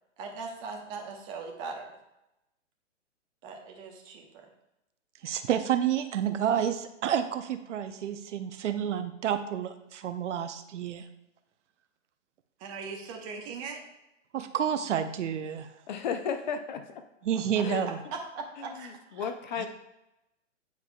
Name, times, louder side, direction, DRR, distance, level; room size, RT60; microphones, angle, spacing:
voice 1, 0.2-1.9 3.4-4.5 12.6-13.8 17.3-18.9 19.2-19.3, right 4 dB, 30° right, 2 dB, 1.1 m, -40 dB
voice 2, 5.2-11.1 14.3-15.7 17.2-18.0 19.6-19.7, right 9 dB, 70° right, 9 dB, 0.7 m, -29 dB
voice 3, 15.9-16.8 17.6-17.9 19.2-19.7, left 7 dB, 40° left, 8 dB, 0.5 m, -32 dB
9.2 x 4.7 x 2.3 m, 0.92 s
hypercardioid pair, 145°, 38 cm